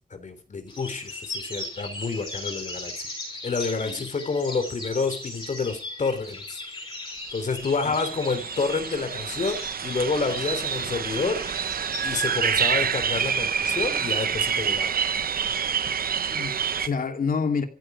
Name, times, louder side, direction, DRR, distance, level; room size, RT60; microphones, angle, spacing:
voice 1, 0.0-2.9 3.4-6.6 7.3-11.4 12.0-15.0, left 4 dB, 55° left, 3.4 m, -29 dB
sound 1, 0.7-12.1, left 2 dB, 30° left, 6.9 m, -38 dB
voice 2, 3.7-4.1 7.8-7.9 16.3-17.7, left 5 dB, 75° left, 2.7 m, -28 dB
sound 2, 7.2-7.3 7.5-16.9, right 7 dB, 85° right, 0.9 m, -27 dB
15.0 x 8.7 x 9.8 m
wide cardioid pair, 155°, 15 cm